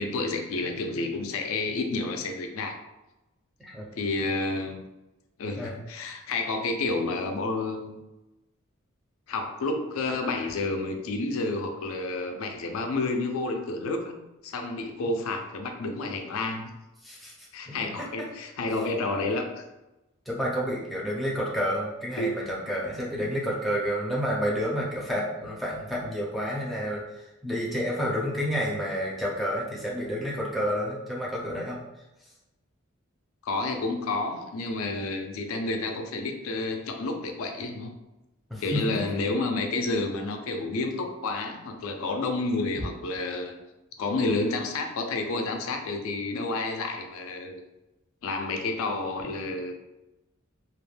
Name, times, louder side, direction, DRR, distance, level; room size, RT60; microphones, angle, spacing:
voice 1, 0.0-2.8 3.9-4.8 5.4-8.0 9.3-14.2 14.4-16.7 17.5-19.6 22.2-22.4 33.4-37.9 38.6-43.5 44.0-47.6 48.2-49.7, left 3 dB, 70° left, 4 dB, 0.4 m, -30 dB
voice 2, 17.0-18.1 20.3-31.8 38.5-39.0, equal, ahead, -4 dB, 0.5 m, -30 dB
2.4 x 2.1 x 3.2 m, 1.0 s
head